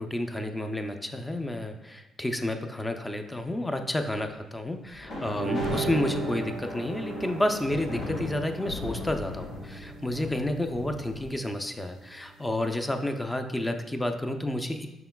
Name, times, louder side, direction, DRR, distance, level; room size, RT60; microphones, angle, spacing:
voice 1, 0.0-14.9, left 1 dB, 15° left, 6 dB, 0.4 m, -30 dB
sound 1, 4.9-11.3, left 2 dB, 70° left, 1.5 m, -37 dB
sound 2, 5.3-13.0, right 5 dB, 85° right, 0.4 m, -39 dB
5.7 x 3.8 x 2.2 m, 1.0 s
cardioid pair, 90°, 0 cm